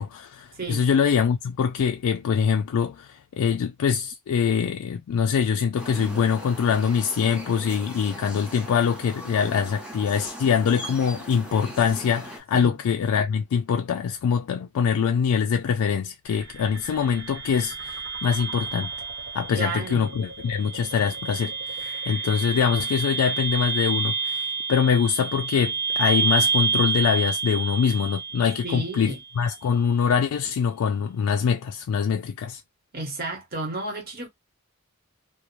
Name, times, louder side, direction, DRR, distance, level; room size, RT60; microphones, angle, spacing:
voice 1, 0.0-18.9 19.3-32.6, left 7 dB, 90° left, 0.3 m, -24 dB
voice 2, 0.5-0.9 12.5-12.7 19.6-20.1 28.6-29.2 32.9-34.3, right 2 dB, 45° right, 0.9 m, -32 dB
sound 1, 5.8-12.4, right 1 dB, 5° right, 0.6 m, -39 dB
sound 2, 16.3-29.3, right 5 dB, 70° right, 0.9 m, -29 dB
2.5 x 2.0 x 2.9 m
head